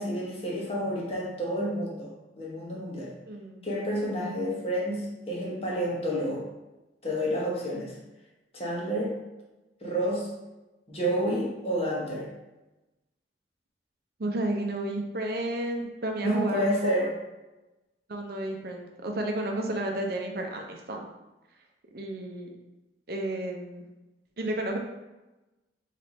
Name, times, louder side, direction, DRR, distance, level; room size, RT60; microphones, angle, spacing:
voice 1, 0.0-3.1 3.6-6.5 7.0-8.0 8.5-9.2 9.8-10.3 10.9-12.3 16.2-17.1, equal, 35° left, -4 dB, 1.0 m, -29 dB
voice 2, 3.3-3.6 4.2-4.6 14.2-17.1 18.1-21.1 21.9-22.5 23.1-23.9 24.4-24.8, right 1 dB, 60° right, 2 dB, 0.6 m, -32 dB
3.3 x 3.2 x 3.9 m, 1.0 s
head